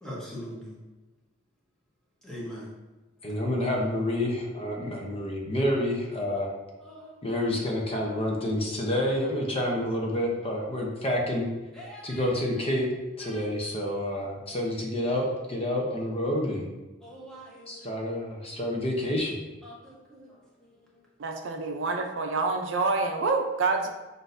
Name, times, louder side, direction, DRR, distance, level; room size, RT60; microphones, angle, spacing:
voice 1, 0.0-0.8 2.2-2.7 6.8-7.2 11.7-12.3 13.2-13.4 17.0-17.9 19.6-21.0, equal, 5° left, -5 dB, 1.0 m, -43 dB
voice 2, 3.2-6.5 7.2-11.5 12.0-12.9 13.2-16.6 17.7-19.4, left 1 dB, 30° left, -1 dB, 0.6 m, -28 dB
voice 3, 21.2-23.9, right 3 dB, 70° right, 4 dB, 0.5 m, -27 dB
6.0 x 2.6 x 2.6 m, 1.2 s
head